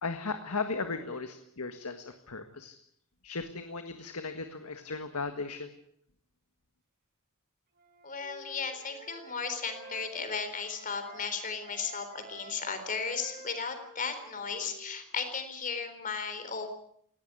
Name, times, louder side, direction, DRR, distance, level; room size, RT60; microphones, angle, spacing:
voice 1, 0.0-2.7 3.2-5.7, left 4 dB, 85° left, 7 dB, 1.7 m, -36 dB
Wind instrument woodwind instrument, 7.7-11.3 11.6-15.4, right 3 dB, 45° right, 5.7 m, -51 dB
voice 2, 8.0-16.7, left 5 dB, 35° left, 9 dB, 4.0 m, -35 dB
19.5 x 17.0 x 9.7 m, 0.68 s
head